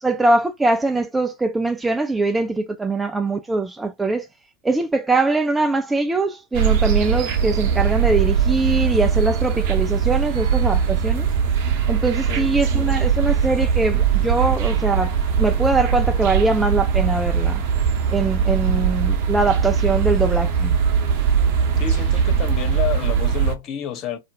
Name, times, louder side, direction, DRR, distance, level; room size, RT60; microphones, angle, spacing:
voice 1, 0.0-4.3 4.6-11.3 11.9-17.6 18.1-20.8, right 3 dB, 10° right, 0.3 m, -22 dB
sound 1, 6.5-23.6, right 7 dB, 50° right, 0.6 m, -20 dB
voice 2, 21.8-24.2, left 9 dB, 40° left, 0.6 m, -29 dB
2.4 x 2.0 x 2.8 m
figure-of-eight pair, 90°, 0 cm